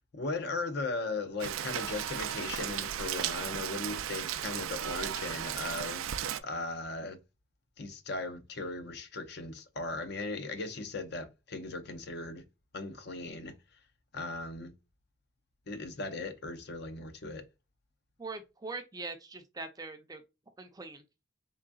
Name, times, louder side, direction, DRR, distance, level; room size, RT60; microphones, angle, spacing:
voice 1, 0.1-7.2 7.8-12.4 12.7-13.5 14.1-14.7 15.7-17.4, left 3 dB, 55° left, 0.6 m, -38 dB
Rain, 1.4-6.4, right 10 dB, 85° right, 0.4 m, -35 dB
voice 2, 18.2-20.2 20.6-21.0, right 3 dB, 20° right, 0.5 m, -42 dB
3.8 x 3.4 x 2.3 m
head